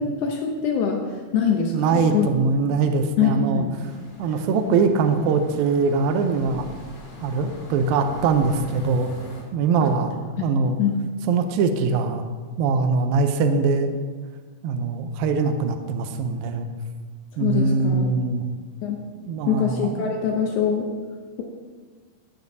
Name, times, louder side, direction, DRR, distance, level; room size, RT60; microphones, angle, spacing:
voice 1, 0.0-2.3 3.2-3.7 9.8-9.9 10.4-10.5 10.8-11.0 17.4-18.1 18.8-19.0 19.5-20.8, left 7 dB, 90° left, 2 dB, 1.7 m, -23 dB
voice 2, 1.7-3.6 4.2-6.7 7.2-9.1 9.5-10.8 11.3-12.2 12.6-13.9 14.6-16.7 17.4-18.4 19.3-20.1, right 4 dB, 75° right, 6 dB, 2.3 m, -22 dB
sound 1, 3.8-9.4, left 1 dB, 35° left, 2.0 m, -43 dB
14.0 x 9.4 x 2.7 m, 1.5 s
omnidirectional pair, 4.5 m